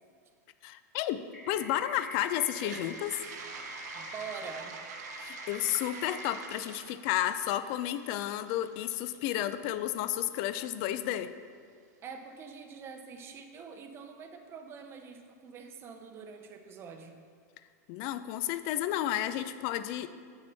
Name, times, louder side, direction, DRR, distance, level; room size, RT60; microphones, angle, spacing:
voice 1, 0.6-3.2 5.2-11.3 17.9-20.1, left 12 dB, 45° left, 12 dB, 0.4 m, -32 dB
sound 1, 1.3-6.3, left 1 dB, 10° left, 1.3 m, -45 dB
Toilet flush, 2.4-10.3, right 6 dB, 70° right, 0.8 m, -47 dB
voice 2, 4.0-4.9 12.0-17.2, right 5 dB, 25° right, 6 dB, 0.7 m, -45 dB
8.2 x 6.6 x 4.0 m, 2.1 s
supercardioid pair, 140°, 9 cm